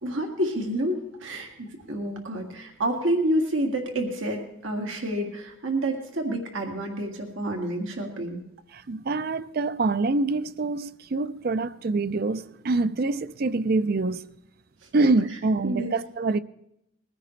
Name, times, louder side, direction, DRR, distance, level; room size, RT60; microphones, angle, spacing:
voice 1, 0.0-8.4 15.6-15.9, right 1 dB, 90° right, 2.0 m, -28 dB
voice 2, 8.7-14.3 14.9-16.4, right 3 dB, 50° right, 0.5 m, -25 dB
21.0 x 15.5 x 3.2 m
head